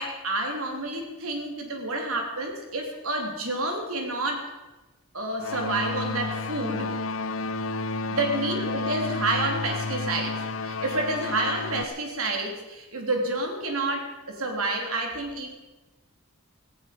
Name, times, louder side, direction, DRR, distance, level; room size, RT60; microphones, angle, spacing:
voice 1, 0.0-4.5 5.1-7.0 8.1-15.5, right 2 dB, 85° right, 2 dB, 3.5 m, -29 dB
sound 1, 5.4-11.8, left 3 dB, 75° left, 0.8 m, -31 dB
17.5 x 16.0 x 5.3 m, 1.1 s
head